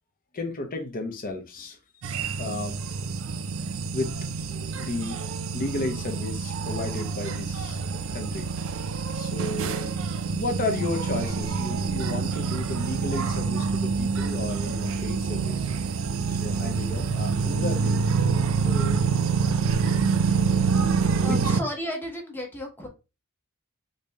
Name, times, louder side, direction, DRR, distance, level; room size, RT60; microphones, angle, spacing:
voice 1, 0.3-1.8 2.4-2.8 3.9-4.1 4.8-5.2 5.5-7.8 8.1-8.5 9.1-15.7 16.3-18.1 18.6-19.0 21.1-21.4, left 2 dB, 40° left, 0.7 m, -33 dB
sound 1, 2.0-21.6, right 5 dB, 65° right, 0.4 m, -27 dB
voice 2, 21.2-22.9, equal, 10° left, 0.9 m, -33 dB
3.3 x 2.7 x 3.3 m
head